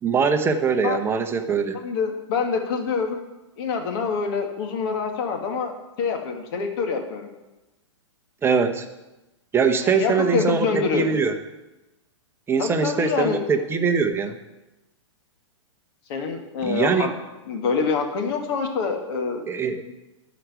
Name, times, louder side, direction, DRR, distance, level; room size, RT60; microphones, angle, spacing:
voice 1, 0.0-1.8 8.4-8.8 9.5-11.4 12.5-14.4 16.6-17.1 19.5-19.8, right 5 dB, 15° right, 6 dB, 0.9 m, -22 dB
voice 2, 1.7-3.2 3.6-7.3 9.8-11.1 12.6-13.4 16.1-17.1 17.5-19.4 19.8-19.9, left 5 dB, 50° left, 4 dB, 2.0 m, -26 dB
11.5 x 5.1 x 8.1 m, 1.0 s
hypercardioid pair, 120°, 16 cm